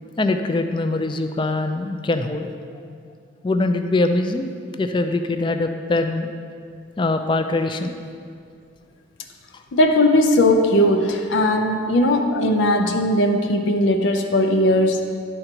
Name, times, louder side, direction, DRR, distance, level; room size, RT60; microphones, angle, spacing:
voice 1, 0.2-2.5 3.4-4.5 4.8-6.3 7.0-7.9 9.5-9.6, left 2 dB, 25° left, 7 dB, 0.3 m, -22 dB
voice 2, 9.7-15.0, left 1 dB, 85° left, 4 dB, 0.6 m, -18 dB
11.0 x 3.8 x 4.5 m, 2.3 s
head